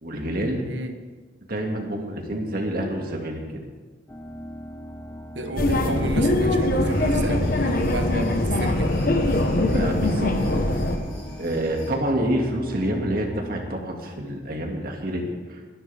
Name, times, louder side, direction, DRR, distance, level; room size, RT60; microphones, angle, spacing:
voice 1, 0.0-0.7 1.5-3.6 9.7-10.6 11.4-15.7, right 1 dB, 55° right, 1 dB, 2.3 m, -28 dB
sound 1, 4.1-13.7, equal, 15° left, 1.0 m, -39 dB
voice 2, 5.3-8.9, right 2 dB, 80° right, 7 dB, 1.3 m, -31 dB
sound 2, 5.6-11.0, left 1 dB, 50° left, 1.3 m, -22 dB
sound 3, 6.9-11.9, left 1 dB, 85° left, 5.8 m, -41 dB
22.0 x 11.5 x 3.6 m, 1.4 s
head